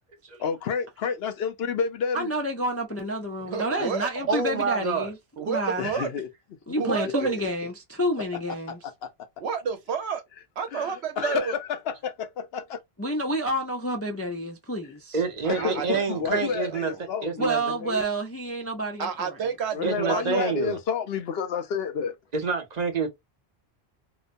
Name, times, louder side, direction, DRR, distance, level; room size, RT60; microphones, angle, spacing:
voice 1, 0.4-2.3 5.8-6.3 6.7-7.4 8.7-9.1 10.7-12.8 15.5-18.0 19.7-22.1, left 6 dB, 75° left, 0.8 m, -30 dB
voice 2, 2.1-5.9 6.7-8.8 13.0-15.2 17.4-19.4, right 1 dB, 25° left, 0.3 m, -29 dB
voice 3, 3.5-4.1 5.4-6.1 6.8-7.4 9.4-10.2 10.6-11.6 15.4-17.0 19.0-20.5, right 6 dB, 90° right, 1.1 m, -30 dB
voice 4, 4.3-5.1 15.1-16.9 17.2-17.6 19.8-20.8 22.3-23.1, right 5 dB, 45° right, 0.8 m, -27 dB
2.9 x 2.0 x 2.5 m
omnidirectional pair, 1.1 m